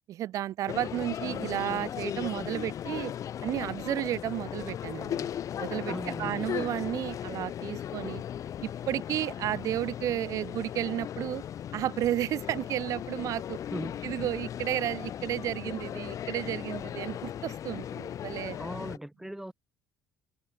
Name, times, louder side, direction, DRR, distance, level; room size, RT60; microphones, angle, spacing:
voice 1, 0.1-3.1 3.4-5.3 5.6-8.2 8.6-11.4 11.7-13.6 14.0-18.6, right 13 dB, 50° right, 0.4 m, -32 dB
sound 1, 0.7-19.0, left 10 dB, 50° left, 2.2 m, -37 dB
voice 2, 5.9-6.5 13.7-14.0 18.6-19.5, right 1 dB, 5° right, 1.7 m, -38 dB
figure-of-eight pair, 55°, 7 cm